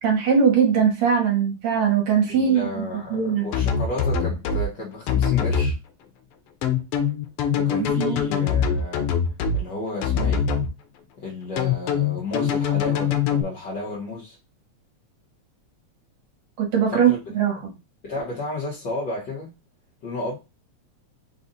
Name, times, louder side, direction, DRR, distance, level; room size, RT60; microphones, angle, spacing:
voice 1, 0.0-3.5 8.0-8.2 16.6-17.7, right 7 dB, 70° right, 2.4 m, -21 dB
voice 2, 2.3-5.8 7.6-9.1 9.5-10.5 11.2-14.4 16.9-17.3 18.0-19.5 20.0-20.4, left 2 dB, 50° left, 1.5 m, -32 dB
sound 1, 3.5-4.7 5.1-5.7 6.6-9.6 10.0-10.7 11.6-13.4, left 7 dB, 90° left, 1.2 m, -23 dB
5.1 x 2.5 x 4.0 m
omnidirectional pair, 3.3 m